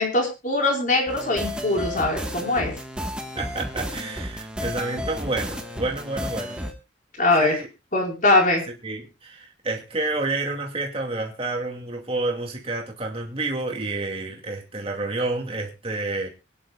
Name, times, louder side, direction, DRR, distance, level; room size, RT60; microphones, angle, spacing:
voice 1, 0.0-2.7 7.2-7.5 7.9-8.6, left 2 dB, 45° left, 4.7 m, -21 dB
sound 1, 1.1-6.7, equal, 5° right, 1.5 m, -32 dB
voice 2, 3.3-6.6 7.4-7.7 8.8-16.3, right 2 dB, 30° right, 2.5 m, -29 dB
24.0 x 10.0 x 2.4 m
head